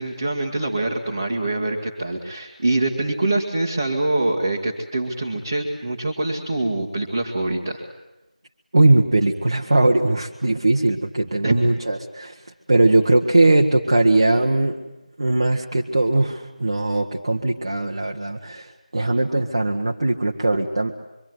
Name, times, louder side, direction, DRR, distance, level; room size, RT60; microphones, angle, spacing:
voice 1, 0.0-7.9 11.4-11.6, right 2 dB, 15° right, -4 dB, 1.9 m, -24 dB
voice 2, 8.7-12.4 12.7-14.8 15.2-20.9, right 2 dB, 35° right, 0 dB, 1.6 m, -19 dB
25.0 x 24.0 x 9.6 m, 0.94 s
figure-of-eight pair, 175°, 4 cm